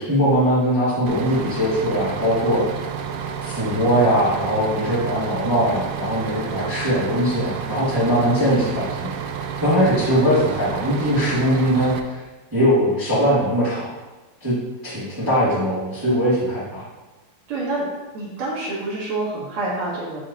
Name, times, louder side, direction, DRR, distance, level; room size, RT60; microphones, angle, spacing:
voice 1, 0.0-2.6 3.4-9.1 9.6-12.2 12.5-13.9 14.4-14.5 14.8-16.8, equal, 15° right, -11 dB, 0.7 m, -20 dB
Bus, 1.1-12.0, right 7 dB, 85° right, 2.3 m, -30 dB
voice 2, 17.5-17.8 18.1-20.2, right 2 dB, 55° right, -6 dB, 2.0 m, -27 dB
9.9 x 4.3 x 3.0 m, 1.1 s
omnidirectional pair, 4.9 m